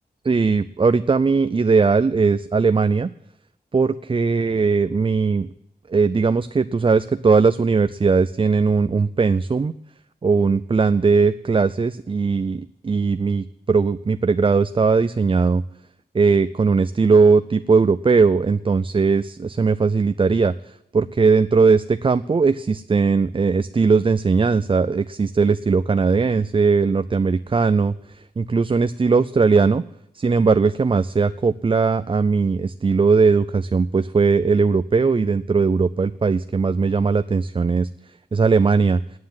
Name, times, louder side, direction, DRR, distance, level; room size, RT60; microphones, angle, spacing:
voice 1, 0.2-3.1 3.7-5.5 5.9-9.7 10.2-15.6 16.1-20.5 20.9-27.9 28.4-29.8 30.1-37.9 38.3-39.0, right 4 dB, 30° right, 13 dB, 0.4 m, -19 dB
9.5 x 9.3 x 9.4 m, 0.81 s
wide cardioid pair, 65°, 17 cm